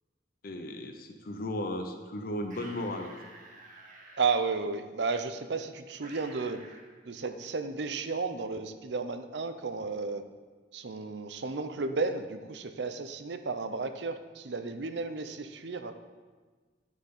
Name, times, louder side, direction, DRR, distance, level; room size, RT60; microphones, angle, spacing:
voice 1, 0.4-3.1, left 1 dB, 55° left, 5 dB, 0.8 m, -35 dB
sound 1, 2.4-4.2 6.0-6.9, right 2 dB, 50° right, 1.9 m, -50 dB
voice 2, 4.2-6.6 7.1-10.2 10.7-15.9, right 4 dB, 70° right, 9 dB, 0.7 m, -33 dB
9.1 x 7.5 x 5.4 m, 1.4 s
head